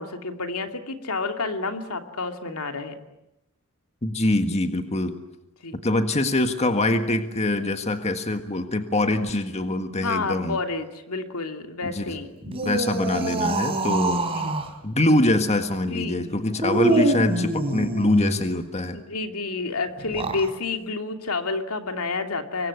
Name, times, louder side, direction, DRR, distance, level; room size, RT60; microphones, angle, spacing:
voice 1, 0.0-3.0 5.6-5.8 10.0-12.3 14.3-14.5 15.8-16.3 16.9-17.1 18.9-22.7, left 3 dB, 80° left, 6 dB, 2.7 m, -30 dB
voice 2, 4.0-5.1 5.7-10.6 11.8-12.0 12.5-14.2 14.8-19.0, left 1 dB, 30° left, 7 dB, 1.7 m, -24 dB
sound 1, 12.4-14.7 16.6-18.4 20.0-20.5, right 2 dB, 25° right, 3.7 m, -25 dB
26.5 x 23.0 x 9.6 m, 0.87 s
head